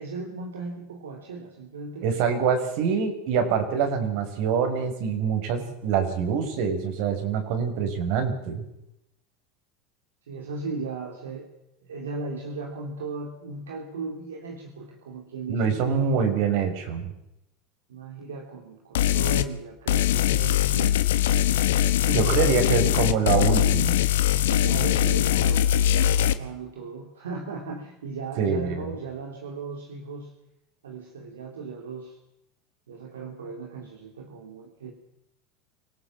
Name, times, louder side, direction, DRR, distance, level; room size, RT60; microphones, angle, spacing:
voice 1, 0.0-2.2 10.3-11.5 11.8-16.3 17.9-21.0 22.0-23.0 24.5-30.3 30.8-32.2 32.9-34.9, right 4 dB, 90° right, 1 dB, 3.0 m, -36 dB
voice 2, 2.0-8.6 15.5-17.0 22.1-24.0 28.4-28.9, right 6 dB, 65° right, 6 dB, 5.9 m, -25 dB
sound 1, 19.0-19.5 19.9-26.3, left 12 dB, 80° left, 1.2 m, -22 dB
25.0 x 18.0 x 7.6 m, 0.84 s
hypercardioid pair, 90°, 0 cm